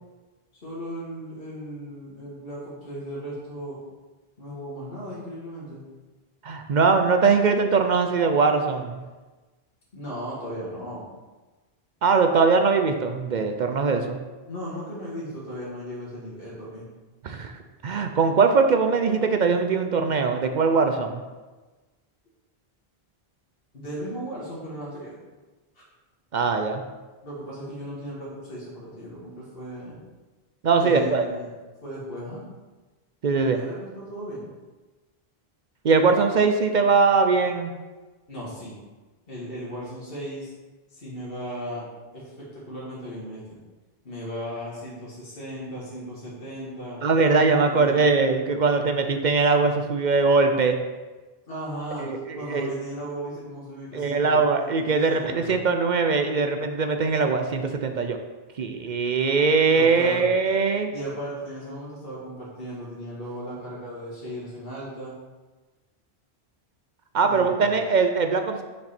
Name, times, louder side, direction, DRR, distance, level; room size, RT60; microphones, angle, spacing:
voice 1, 0.6-3.8 4.4-5.8 9.9-11.0 14.5-16.9 23.7-25.1 27.2-30.0 30.8-31.5 31.8-32.4 33.3-34.5 38.3-38.7 39.3-40.5 40.9-41.8 42.1-43.6 44.0-47.0 47.6-48.0 51.5-52.1 52.4-54.7 55.0-55.6 59.7-60.3 60.9-65.1 67.2-67.8, equal, 65° left, -7 dB, 2.1 m, -36 dB
voice 2, 6.4-9.0 12.0-14.2 17.2-17.6 17.8-21.2 26.3-26.8 30.6-31.3 33.2-33.6 35.8-37.7 47.0-50.8 52.0-52.7 53.9-58.2 58.6-60.9 67.1-68.6, right 4 dB, 55° right, 6 dB, 0.6 m, -21 dB
6.7 x 5.4 x 4.3 m, 1.2 s
omnidirectional pair, 1.0 m